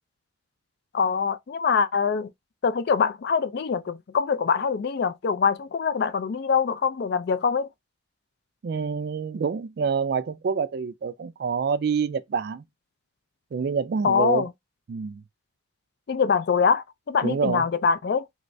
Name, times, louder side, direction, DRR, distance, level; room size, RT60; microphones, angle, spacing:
voice 1, 0.9-2.3 2.6-7.7 14.0-14.5 16.1-18.3, left 6 dB, 55° left, 0.3 m, -24 dB
voice 2, 8.6-12.6 13.5-14.5 14.9-15.2 17.2-17.6, right 5 dB, 50° right, 0.3 m, -27 dB
3.2 x 3.1 x 2.6 m
head